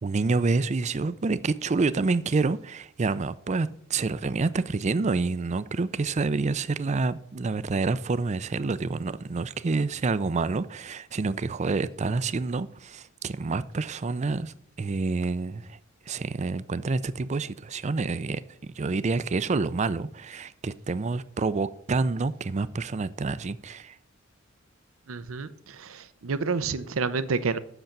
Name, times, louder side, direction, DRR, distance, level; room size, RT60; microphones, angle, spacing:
voice 1, 0.0-15.8 16.1-24.0, right 3 dB, 35° right, 0.4 m, -28 dB
voice 2, 25.1-27.6, right 4 dB, 75° right, 0.6 m, -29 dB
8.0 x 6.6 x 7.2 m
head